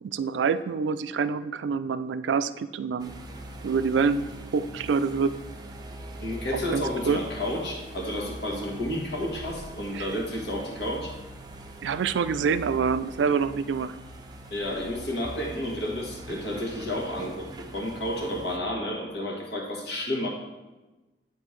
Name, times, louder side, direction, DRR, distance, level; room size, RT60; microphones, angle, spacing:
voice 1, 0.0-3.1 3.6-5.4 6.5-7.2 9.9-10.1 11.8-13.9, right 5 dB, 80° right, 13 dB, 0.3 m, -26 dB
sound 1, 3.0-18.6, right 1 dB, 20° right, 0.5 m, -42 dB
voice 2, 6.2-11.1 14.5-17.5 17.7-20.3, left 1 dB, 65° left, -1 dB, 1.4 m, -31 dB
9.9 x 4.4 x 3.2 m, 1.1 s
head